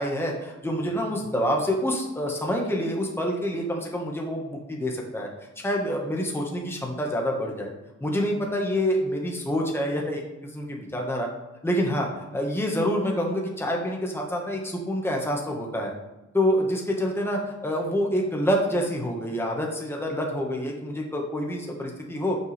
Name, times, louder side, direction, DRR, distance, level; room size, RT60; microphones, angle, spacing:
voice 1, 0.0-5.3 5.6-7.7 8.0-11.3 11.6-15.9 16.3-22.4, equal, 10° left, -1 dB, 1.7 m, -27 dB
11.5 x 7.3 x 3.5 m, 0.99 s
cardioid pair, 110°, 30 cm